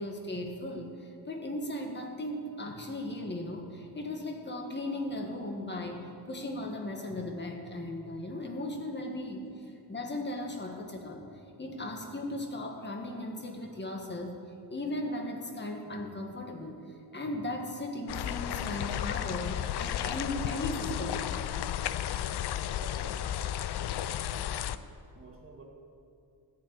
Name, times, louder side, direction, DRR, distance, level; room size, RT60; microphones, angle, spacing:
voice 1, 0.0-9.4 9.9-11.3 11.6-14.4 14.7-16.8 17.1-21.5, left 1 dB, 25° left, 2 dB, 1.6 m, -37 dB
sound 1, 18.1-24.8, left 11 dB, 75° left, 0.5 m, -33 dB
voice 2, 22.8-23.7 24.0-24.8 25.1-25.6, right 2 dB, 35° right, 0 dB, 1.9 m, -51 dB
13.5 x 5.8 x 9.6 m, 2.5 s
wide cardioid pair, 145°, 40 cm